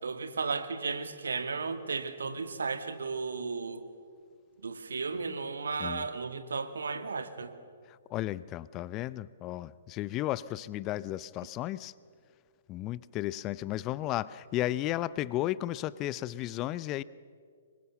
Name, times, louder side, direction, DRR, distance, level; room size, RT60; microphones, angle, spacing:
voice 1, 0.0-3.9 4.6-7.5, right 4 dB, 75° right, 9 dB, 2.0 m, -34 dB
voice 2, 8.1-11.9 12.7-17.0, left 14 dB, 25° left, 19 dB, 0.6 m, -34 dB
26.0 x 23.0 x 7.2 m, 2.1 s
figure-of-eight pair, 125°, 0 cm